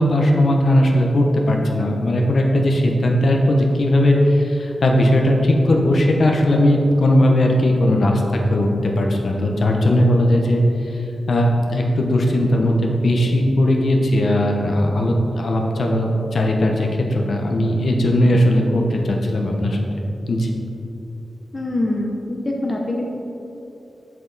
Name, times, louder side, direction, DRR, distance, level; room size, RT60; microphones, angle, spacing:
voice 1, 0.0-10.6 10.9-11.0 11.3-19.8 20.3-20.5, left 1 dB, 60° left, 1 dB, 0.9 m, -18 dB
voice 2, 21.5-23.1, left 1 dB, 30° left, -1 dB, 0.7 m, -24 dB
8.0 x 7.5 x 4.1 m, 2.9 s
wide cardioid pair, 175°, 0 cm